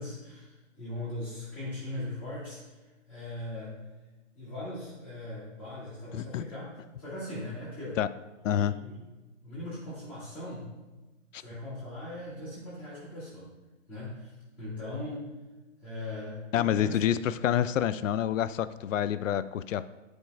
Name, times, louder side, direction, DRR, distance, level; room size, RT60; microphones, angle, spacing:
voice 1, 0.0-3.8 4.3-6.7 7.0-8.0 8.5-8.9 9.4-10.7 11.3-13.5 13.9-15.3 15.8-17.0, left 1 dB, 5° left, -15 dB, 2.4 m, -39 dB
voice 2, 6.1-6.4 8.0-8.1 8.4-8.7 11.3-11.4 16.5-19.9, left 10 dB, 75° left, 15 dB, 0.5 m, -27 dB
11.5 x 5.2 x 2.6 m, 1.2 s
hypercardioid pair, 155°, 38 cm